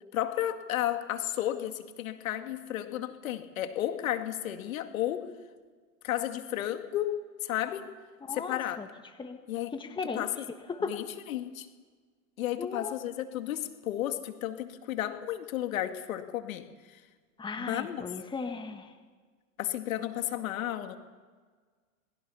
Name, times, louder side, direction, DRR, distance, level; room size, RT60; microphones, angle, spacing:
voice 1, 0.1-5.3 6.0-7.9 8.3-8.8 9.5-9.7 10.1-10.5 10.9-11.7 12.4-17.0 17.6-18.0 19.6-21.0, left 12 dB, 75° left, 7 dB, 2.3 m, -33 dB
voice 2, 8.3-8.9 9.2-9.4 9.7-10.3 10.7-10.9 12.6-13.0 17.4-18.9, left 4 dB, 10° left, 6 dB, 1.8 m, -36 dB
27.5 x 20.5 x 5.7 m, 1.5 s
hypercardioid pair, 120°, 41 cm